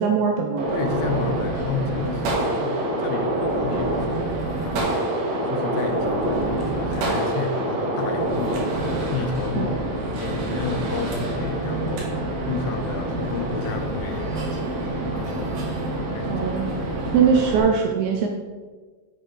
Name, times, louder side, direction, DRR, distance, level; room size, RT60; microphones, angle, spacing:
voice 1, 0.0-0.7 9.6-9.8 16.3-16.7 17.1-18.3, right 6 dB, 85° right, 2 dB, 2.6 m, -21 dB
Gunshot gunfire, 0.6-17.6, right 1 dB, 65° right, 2.7 m, -26 dB
voice 2, 0.7-2.3 2.5-5.2 5.5-9.7 10.1-14.8 15.1-15.5 16.1-16.5 16.9-17.3, left 6 dB, 80° left, 5 dB, 3.1 m, -32 dB
7.8 x 6.1 x 3.7 m, 1.4 s
omnidirectional pair, 5.7 m